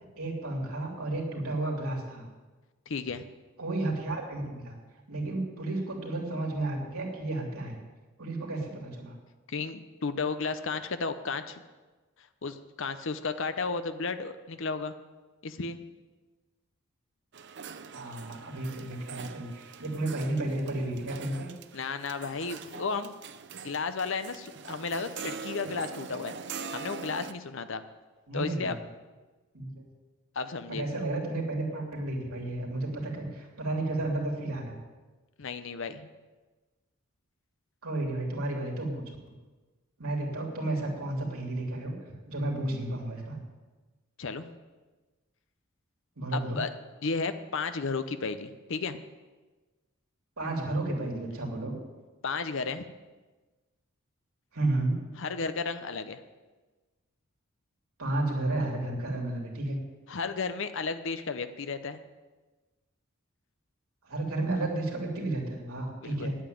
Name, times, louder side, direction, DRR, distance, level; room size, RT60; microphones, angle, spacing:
voice 1, 0.2-2.3 3.6-4.8 5.1-7.8 8.2-9.1 17.9-21.5 28.3-28.7 29.5-29.8 30.7-34.8 37.8-39.0 40.0-41.9 42.3-43.4 46.2-46.6 50.4-51.7 54.5-55.0 58.0-59.8 64.0-66.4, right 2 dB, 85° right, -1 dB, 3.2 m, -32 dB
voice 2, 2.9-3.2 9.5-11.6 12.4-14.9 15.4-15.8 21.7-23.1 23.6-26.3 26.7-27.8 28.3-28.8 30.3-30.9 35.4-36.1 44.2-44.5 46.3-46.7 47.0-49.0 52.2-52.9 55.2-56.2 60.1-62.0 66.0-66.3, left 4 dB, 60° left, 10 dB, 0.7 m, -33 dB
sound 1, 17.3-27.3, right 5 dB, 55° right, 0.6 m, -43 dB
9.2 x 8.7 x 9.2 m, 1.2 s
head